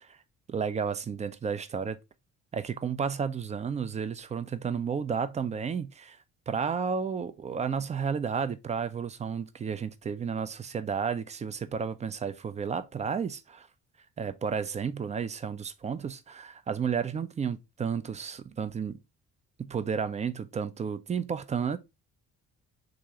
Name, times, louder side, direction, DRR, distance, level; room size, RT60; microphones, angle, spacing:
voice 1, 0.5-2.0 2.5-6.2 6.5-13.7 14.2-19.0 19.6-21.8, right 6 dB, 15° right, 0.3 m, -32 dB
3.8 x 2.7 x 4.8 m
figure-of-eight pair, 40°, 46 cm